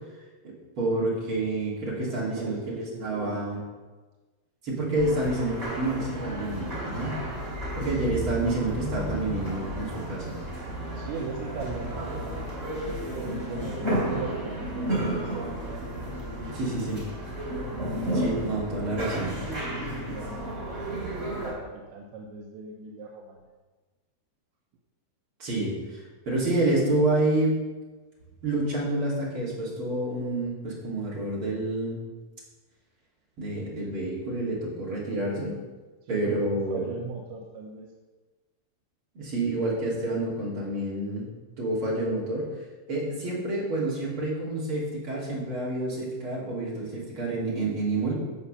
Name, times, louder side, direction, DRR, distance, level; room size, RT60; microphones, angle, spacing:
voice 1, 0.4-3.6 4.6-7.2 7.8-10.3 16.5-17.0 18.1-19.5 25.4-27.6 28.4-32.0 33.4-35.5 36.1-36.9 39.1-41.3 41.6-42.5 42.9-48.1, right 2 dB, 35° right, -5 dB, 3.0 m, -28 dB
voice 2, 2.0-3.7 9.9-10.0 10.9-16.5 18.9-19.0 19.7-23.5 36.0-37.9, right 4 dB, 80° right, -1 dB, 3.2 m, -40 dB
sound 1, 5.0-21.5, right 1 dB, 15° right, 2.8 m, -32 dB
15.5 x 5.7 x 5.6 m, 1.3 s
omnidirectional pair, 5.4 m